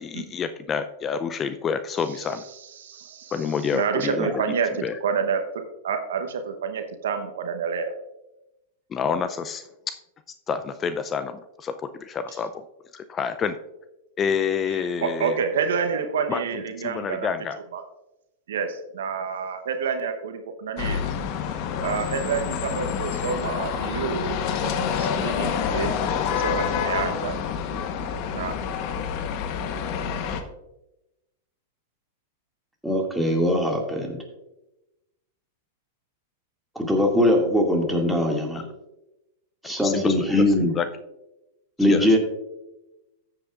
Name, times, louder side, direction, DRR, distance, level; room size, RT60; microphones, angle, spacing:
voice 1, 0.0-2.4 3.3-4.3 4.8-5.0 8.9-10.0 10.5-12.6 12.9-13.6 14.2-15.4 16.3-16.4 16.8-17.6 39.6-40.9 41.8-42.1, left 6 dB, 25° left, 11 dB, 0.4 m, -28 dB
voice 2, 2.8-3.4 3.7-7.9 14.7-17.3 17.7-17.8 18.5-21.0 21.8-24.3 24.6-26.0 26.3-27.3 28.3-28.5, right 6 dB, 75° right, 7 dB, 0.9 m, -28 dB
sound 1, 20.8-30.4, left 7 dB, 50° left, 1.0 m, -27 dB
voice 3, 32.8-34.2 36.8-38.6 39.6-40.7 41.8-42.2, left 1 dB, ahead, 0 dB, 2.1 m, -21 dB
13.5 x 7.8 x 2.4 m, 0.95 s
hypercardioid pair, 110°, 0 cm